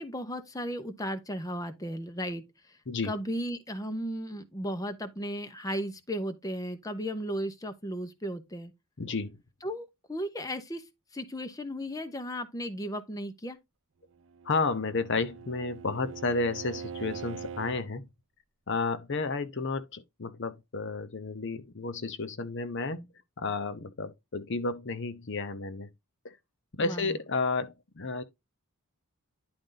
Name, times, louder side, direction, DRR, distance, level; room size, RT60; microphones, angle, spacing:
voice 1, 0.0-2.8 3.0-8.7 9.6-13.6 26.8-27.2, equal, 15° left, 0.9 m, -35 dB
voice 2, 9.0-9.4 14.4-18.1 18.7-23.1 23.4-25.9 26.2-26.3 26.7-28.2, left 3 dB, 55° left, 0.8 m, -32 dB
Bowed string instrument, 14.2-17.9, right 6 dB, 60° right, 0.7 m, -42 dB
10.5 x 3.9 x 3.9 m
head